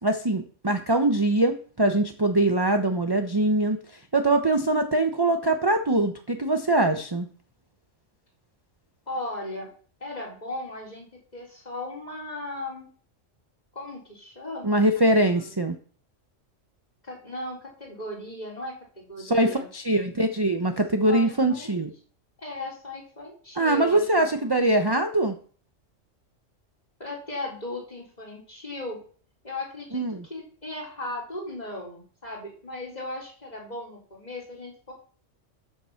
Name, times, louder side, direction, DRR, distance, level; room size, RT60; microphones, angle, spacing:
voice 1, 0.0-7.3 14.6-15.7 19.2-21.9 23.6-25.3 29.9-30.2, right 1 dB, 20° right, 6 dB, 0.9 m, -23 dB
voice 2, 9.1-9.7 10.0-12.9 13.7-14.8 15.1-15.5 17.0-19.7 21.1-21.7 22.4-24.6 27.0-29.0 29.4-34.9, left 1 dB, 30° left, -2 dB, 4.4 m, -37 dB
13.5 x 7.3 x 5.9 m, 0.44 s
omnidirectional pair, 1.3 m